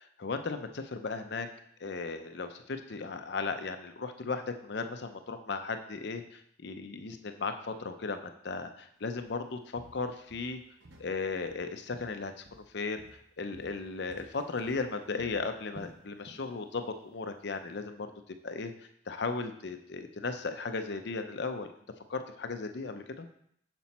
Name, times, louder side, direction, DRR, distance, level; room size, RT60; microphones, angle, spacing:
voice 1, 0.2-1.5 1.8-10.6 11.0-13.0 13.4-18.1 18.4-18.7 19.1-21.7 22.1-23.3, left 4 dB, 60° left, 7 dB, 0.6 m, -36 dB
Walk footsteps, 9.2-9.4 9.8-11.1 11.4-12.7 13.0-16.5 16.8-17.1 17.5-17.6, right 1 dB, 65° right, 1.0 m, -54 dB
6.8 x 6.0 x 4.2 m, 0.70 s
head